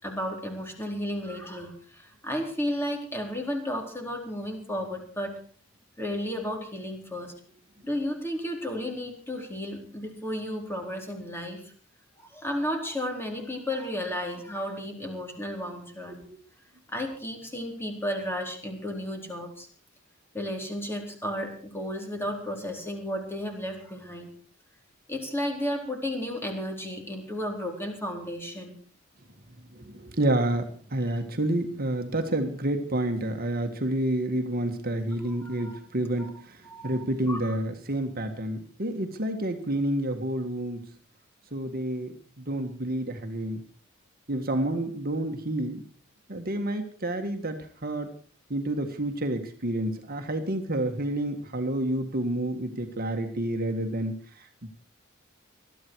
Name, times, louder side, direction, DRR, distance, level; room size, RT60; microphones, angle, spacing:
voice 1, 0.0-5.4 6.0-7.3 7.8-11.6 12.2-16.2 16.9-19.7 20.3-24.3 25.1-28.8 35.2-35.8 36.2-36.3 36.7-37.0 37.3-37.6, equal, 10° left, 2 dB, 4.0 m, -33 dB
voice 2, 29.7-36.6 36.8-40.8 41.5-43.6 44.3-45.8 46.3-48.1 48.5-54.7, right 1 dB, 45° right, 5 dB, 1.8 m, -29 dB
21.0 x 13.5 x 4.7 m, 0.44 s
head